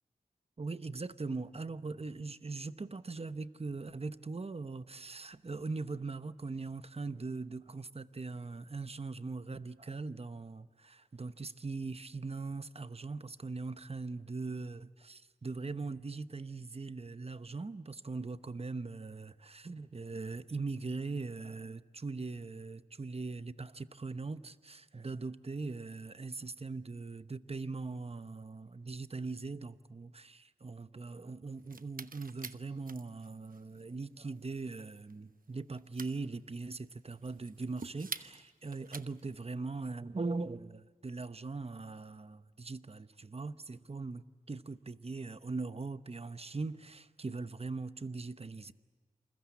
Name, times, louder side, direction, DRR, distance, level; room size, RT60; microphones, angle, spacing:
voice 1, 0.6-48.7, right 3 dB, 45° right, 0.9 m, -41 dB
sound 1, 31.5-39.4, right 4 dB, 70° right, 1.0 m, -48 dB
28.0 x 22.0 x 8.4 m
wide cardioid pair, 50°, 15 cm